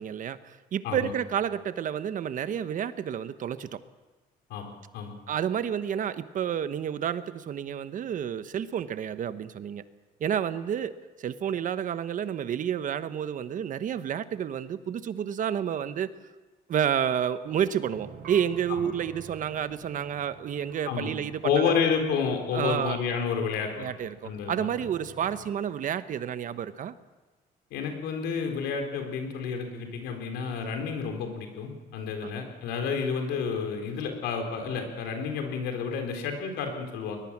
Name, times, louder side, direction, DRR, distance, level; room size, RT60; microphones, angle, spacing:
voice 1, 0.0-3.8 5.3-9.8 10.2-10.9 11.2-16.1 16.7-21.6 22.5-23.0 23.7-26.9 32.2-32.3, right 9 dB, 50° right, 12 dB, 1.1 m, -30 dB
voice 2, 4.5-5.1 20.9-21.2 21.4-23.9 24.2-24.7 27.7-37.2, left 6 dB, 90° left, 4 dB, 3.9 m, -30 dB
sound 1, 17.8-25.5, right 5 dB, 65° right, 3.6 m, -49 dB
21.5 x 21.0 x 7.4 m, 1.2 s
cardioid pair, 110°, 17 cm